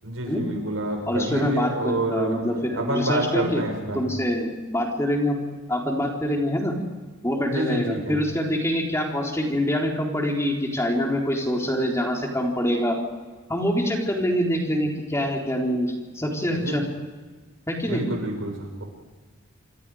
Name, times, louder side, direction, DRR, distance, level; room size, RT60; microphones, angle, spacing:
voice 1, 0.0-2.4 2.7-4.0 7.5-8.2 16.5-16.8 17.9-18.8, right 1 dB, 80° right, 3 dB, 6.5 m, -28 dB
voice 2, 1.1-3.6 3.9-5.4 5.7-6.7 7.2-13.0 13.5-16.8 17.7-18.0, equal, 15° left, 0 dB, 4.0 m, -25 dB
27.5 x 25.5 x 5.0 m, 1.3 s
head